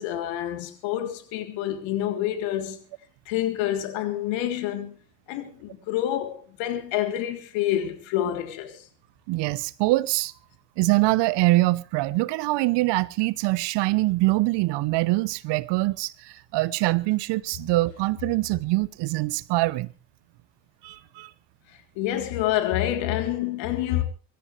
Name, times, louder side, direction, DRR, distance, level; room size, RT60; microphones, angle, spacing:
voice 1, 0.0-2.8 3.3-4.9 5.3-8.9 22.0-24.0, left 12 dB, 65° left, 3.5 m, -27 dB
voice 2, 9.3-10.3 10.8-19.9 20.8-21.3, right 20 dB, 55° right, 1.0 m, -24 dB
24.5 x 13.5 x 3.3 m
hypercardioid pair, 80°, 50 cm